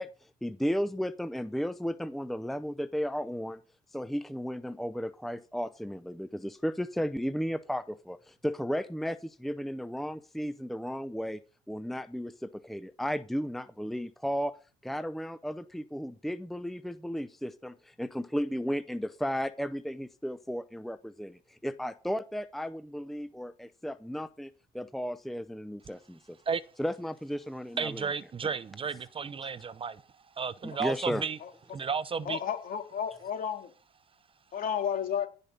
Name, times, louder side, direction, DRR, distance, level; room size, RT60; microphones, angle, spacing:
voice 1, 0.0-3.6 3.9-11.4 11.7-14.5 14.8-26.4 26.8-28.1 29.4-29.5 30.6-31.3, equal, ahead, 0.6 m, -34 dB
voice 2, 27.8-30.0 30.4-31.4 31.7-32.4, right 5 dB, 30° right, 0.8 m, -33 dB
voice 3, 32.3-33.7 34.5-35.3, left 8 dB, 55° left, 3.4 m, -32 dB
16.0 x 5.4 x 8.3 m
cardioid pair, 110°, 17 cm